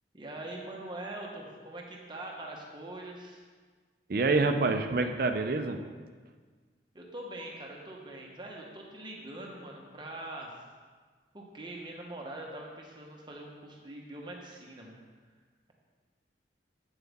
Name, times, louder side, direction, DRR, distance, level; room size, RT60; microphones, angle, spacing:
voice 1, 0.1-3.4 6.9-10.5 11.3-15.0, right 1 dB, 25° right, -1 dB, 1.1 m, -43 dB
voice 2, 4.1-5.8, right 3 dB, 55° right, 6 dB, 0.5 m, -27 dB
8.1 x 7.9 x 3.6 m, 1.5 s
head